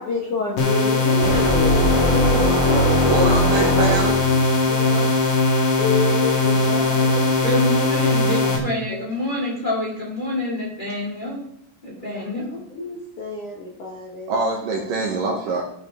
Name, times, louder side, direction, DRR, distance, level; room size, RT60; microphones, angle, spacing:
voice 1, 0.0-3.3 4.0-4.1 4.6-5.1 5.8-7.3 7.6-8.1 8.4-8.6 8.9-9.0 12.1-12.2 12.7-14.4 14.7-15.5, left 3 dB, 75° left, -3 dB, 1.8 m, -29 dB
sound 1, 0.6-8.6, left 3 dB, 50° left, 2.1 m, -19 dB
sound 2, 1.2-4.4, equal, 10° left, 1.6 m, -23 dB
voice 2, 3.1-4.2 14.3-15.6, right 3 dB, 75° right, -1 dB, 2.0 m, -23 dB
voice 3, 7.4-11.4 11.8-12.6, left 1 dB, 25° left, -4 dB, 1.0 m, -27 dB
15.5 x 5.7 x 3.6 m, 0.71 s
omnidirectional pair, 5.7 m